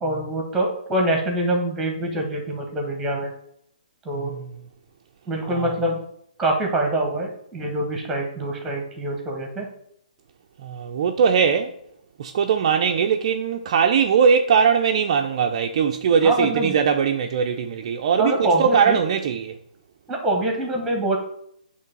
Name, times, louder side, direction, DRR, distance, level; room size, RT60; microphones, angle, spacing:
voice 1, 0.0-3.3 4.0-4.3 5.3-6.0 6.4-9.7 16.2-16.7 18.2-19.0 20.1-21.2, right 1 dB, 5° right, 1.3 m, -24 dB
voice 2, 4.2-4.5 5.5-5.7 10.6-11.7 12.2-19.6, right 6 dB, 40° right, 0.5 m, -20 dB
8.1 x 3.2 x 5.3 m
hypercardioid pair, 160°, 5 cm